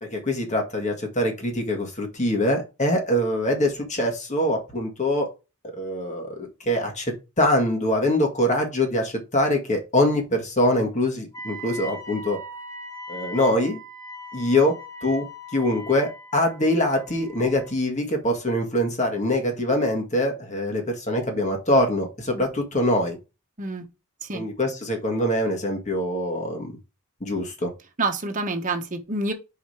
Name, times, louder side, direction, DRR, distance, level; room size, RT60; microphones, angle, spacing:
voice 1, 0.0-5.3 5.8-12.4 13.1-13.8 14.3-14.8 15.0-15.3 15.5-23.2 24.3-26.7 27.2-27.7, left 1 dB, 35° left, 1.8 m, -24 dB
Wind instrument woodwind instrument, 11.3-17.8, equal, 15° left, 1.6 m, -40 dB
voice 2, 28.0-29.3, right 2 dB, 35° right, 1.2 m, -27 dB
5.1 x 4.9 x 4.9 m
head